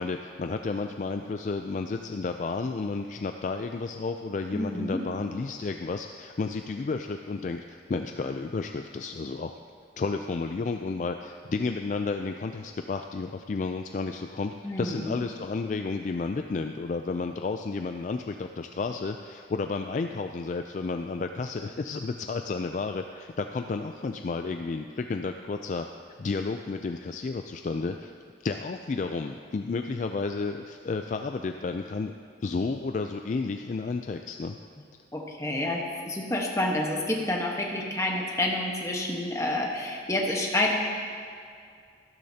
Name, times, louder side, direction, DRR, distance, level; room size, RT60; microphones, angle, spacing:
voice 1, 0.0-9.5 10.0-25.9 26.2-28.1 28.4-32.1 32.4-34.6, left 4 dB, 45° left, 6 dB, 0.3 m, -32 dB
voice 2, 4.5-5.0 14.6-15.1 35.1-40.8, left 1 dB, 15° left, -1 dB, 1.2 m, -28 dB
13.5 x 12.0 x 2.8 m, 2.3 s
head